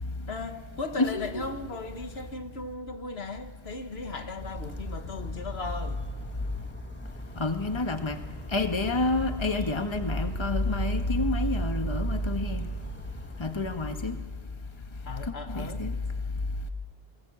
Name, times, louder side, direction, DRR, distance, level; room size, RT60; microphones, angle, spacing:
voice 1, 0.3-6.0 15.0-15.9, left 3 dB, 80° left, 7 dB, 1.8 m, -37 dB
voice 2, 1.0-1.4 7.4-8.2 8.5-12.7 13.4-14.2 15.5-15.9, left 2 dB, 25° left, 7 dB, 1.4 m, -28 dB
Bird vocalization bird call bird song, 4.4-13.9, left 1 dB, 10° left, 1.7 m, -42 dB
26.0 x 20.0 x 7.6 m, 1.4 s
omnidirectional pair, 1.0 m